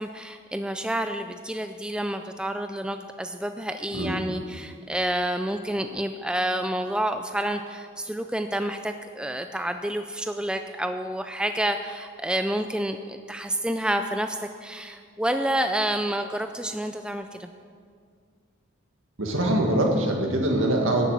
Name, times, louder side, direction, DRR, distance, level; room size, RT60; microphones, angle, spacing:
voice 1, 0.0-17.5, right 1 dB, 5° right, 7 dB, 0.3 m, -29 dB
voice 2, 19.2-21.1, right 1 dB, 70° right, 1 dB, 2.0 m, -23 dB
12.0 x 8.4 x 8.2 m, 2.1 s
head